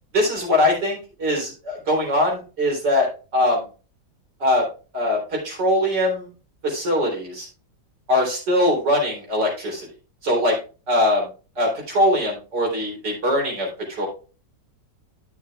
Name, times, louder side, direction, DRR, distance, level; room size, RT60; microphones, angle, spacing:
voice 1, 0.1-3.1 3.3-3.6 4.4-4.6 4.9-6.3 6.6-7.5 8.1-9.9 10.2-10.6 10.9-11.3 11.6-13.7 14.0-14.1, left 1 dB, 70° right, -1 dB, 4.1 m, -21 dB
13.0 x 6.4 x 2.4 m, 0.34 s
omnidirectional pair, 1.9 m